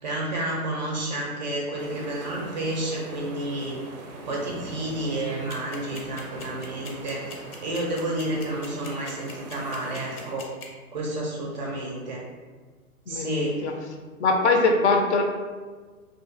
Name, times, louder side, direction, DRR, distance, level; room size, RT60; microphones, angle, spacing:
voice 1, 0.0-3.8 4.2-7.2 7.6-10.5 10.9-12.2 13.1-13.7, right 1 dB, 35° right, -2 dB, 0.4 m, -30 dB
sound 1, 1.8-10.4, right 2 dB, 85° right, 0.5 m, -41 dB
sound 2, 5.5-10.7, left 4 dB, 90° left, 0.7 m, -41 dB
voice 2, 13.1-13.7 14.2-15.2, left 3 dB, 55° left, 3 dB, 0.4 m, -22 dB
2.6 x 2.5 x 2.4 m, 1.4 s
figure-of-eight pair, 120°, 43 cm